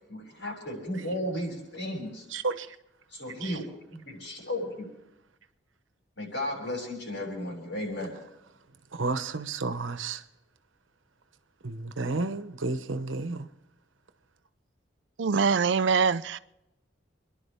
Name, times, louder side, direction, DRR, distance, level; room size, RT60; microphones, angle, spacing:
voice 1, 0.1-2.3 3.1-4.9 6.2-8.2, left 1 dB, 65° left, 7.2 m, -34 dB
voice 2, 2.3-2.8 3.4-3.6 8.9-10.2 11.6-13.5, right 3 dB, 85° right, 1.0 m, -32 dB
voice 3, 15.2-16.4, right 5 dB, 70° right, 0.5 m, -23 dB
29.0 x 11.0 x 3.6 m
head